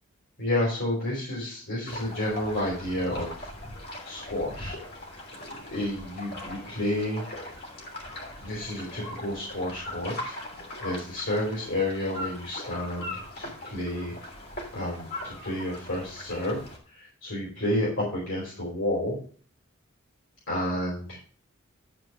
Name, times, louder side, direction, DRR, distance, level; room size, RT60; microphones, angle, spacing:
voice 1, 0.4-3.5 4.0-4.8 5.7-7.2 8.4-10.3 10.8-14.1 14.7-16.6 16.9-19.2 20.5-21.2, left 1 dB, 70° left, -5 dB, 4.6 m, -30 dB
sound 1, 1.9-16.8, left 1 dB, 50° left, 3.2 m, -40 dB
12.0 x 4.7 x 6.3 m, 0.43 s
head